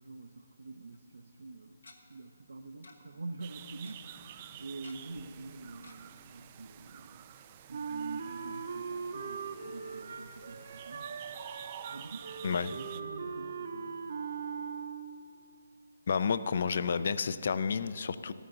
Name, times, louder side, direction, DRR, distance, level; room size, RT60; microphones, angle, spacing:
voice 1, 0.0-1.8 2.1-7.3 7.7-11.1 11.9-14.0, right 3 dB, 85° right, 4 dB, 0.7 m, -46 dB
Tick-tock, 0.9-1.0 1.8-2.0 2.8-3.0 3.2-3.3 3.6-4.0 4.8-5.2 5.8-5.9 6.4-6.5 6.8-6.9, left 3 dB, 80° left, 1.3 m, -53 dB
sound 1, 3.4-13.0, right 11 dB, 25° right, 0.3 m, -50 dB
Wind instrument woodwind instrument, 7.7-15.3, right 5 dB, 50° right, 0.7 m, -40 dB
voice 2, 16.1-18.3, left 6 dB, 45° left, 15 dB, 0.4 m, -30 dB
14.0 x 12.5 x 3.9 m, 2.6 s
hypercardioid pair, 170°, 0 cm